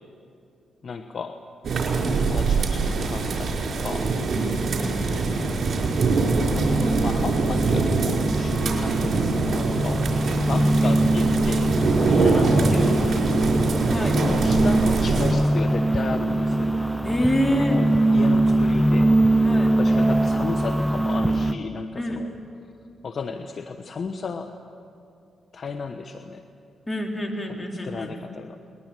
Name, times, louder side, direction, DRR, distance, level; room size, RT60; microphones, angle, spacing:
voice 1, 0.8-1.4 1.9-4.1 6.5-10.1 10.5-13.6 14.1-16.7 17.7-19.1 19.6-22.3 23.0-24.5 25.5-26.4 27.8-28.6, left 5 dB, 55° left, 7 dB, 1.1 m, -34 dB
sound 1, 1.6-15.3, right 4 dB, 60° right, 4.9 m, -23 dB
voice 2, 4.4-5.4 10.6-11.1 13.9-14.2 17.0-17.8 19.4-19.7 22.0-22.2 26.9-28.1, equal, 20° left, 2 dB, 4.0 m, -27 dB
sound 2, 5.2-21.5, right 1 dB, ahead, 1.0 m, -23 dB
21.5 x 20.5 x 9.2 m, 2.5 s
supercardioid pair, 60°, 0 cm